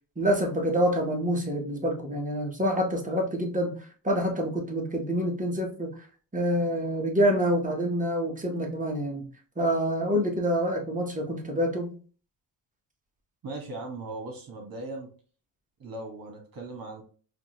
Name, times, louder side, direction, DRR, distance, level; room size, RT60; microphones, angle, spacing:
voice 1, 0.2-6.0 6.3-9.3 9.6-12.0, equal, 15° right, 2 dB, 1.0 m, -27 dB
voice 2, 13.4-15.1 15.8-17.0, right 2 dB, 45° right, 2 dB, 1.4 m, -38 dB
4.6 x 2.5 x 2.9 m, 0.40 s
cardioid pair, 110°, 48 cm